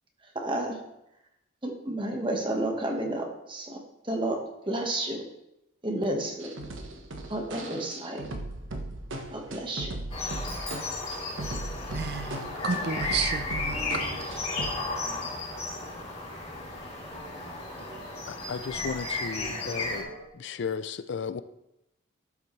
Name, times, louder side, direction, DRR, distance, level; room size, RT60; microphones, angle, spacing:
voice 1, 0.3-0.8 1.6-5.2 5.8-6.5 7.3-8.2 9.3-9.9, right 1 dB, 25° right, 1.3 m, -31 dB
sound 1, 6.4-14.9 15.1-15.2 15.5-17.5 17.8-20.3, right 1 dB, 75° right, 1.1 m, -39 dB
sound 2, 10.1-20.0, left 2 dB, 30° left, 2.5 m, -34 dB
sound 3, 10.4-12.1, left 1 dB, 5° left, 1.9 m, -47 dB
voice 2, 11.9-14.2, right 5 dB, 55° right, 0.6 m, -32 dB
voice 3, 18.2-20.1 20.3-21.4, left 6 dB, 60° left, 0.4 m, -34 dB
12.5 x 7.1 x 3.2 m
head